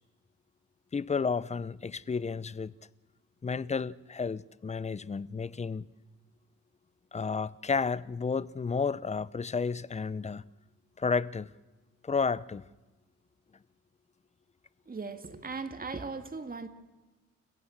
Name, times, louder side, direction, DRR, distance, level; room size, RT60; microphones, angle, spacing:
voice 1, 0.9-2.7 3.4-5.9 7.1-10.4 11.0-11.5 12.0-12.6, left 5 dB, 20° left, 0.7 m, -31 dB
voice 2, 14.9-16.7, right 4 dB, 30° right, 2.4 m, -38 dB
30.0 x 16.5 x 7.4 m
cardioid pair, 90°, 30 cm